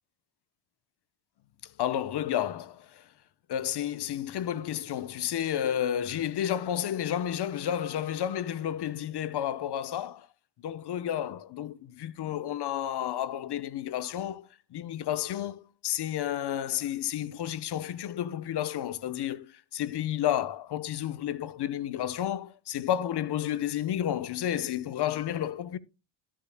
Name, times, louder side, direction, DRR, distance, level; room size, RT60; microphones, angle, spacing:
voice 1, 1.8-3.0 3.5-10.3 10.6-25.8, left 11 dB, 55° left, 0.9 m, -31 dB
16.5 x 7.6 x 2.2 m
supercardioid pair, 70°, 48 cm